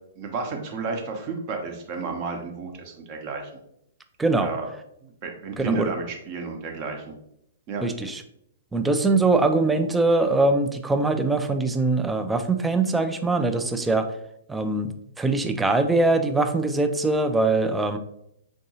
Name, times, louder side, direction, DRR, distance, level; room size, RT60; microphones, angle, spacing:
voice 1, 0.2-3.5 4.4-4.7 5.0-7.1 7.7-7.8, right 4 dB, 35° right, 3 dB, 0.8 m, -32 dB
voice 2, 4.2-4.5 5.6-5.9 7.8-8.2 8.7-14.1 14.5-18.0, right 3 dB, 10° right, 7 dB, 0.3 m, -22 dB
4.6 x 2.7 x 2.7 m, 0.76 s
figure-of-eight pair, 115°, 0 cm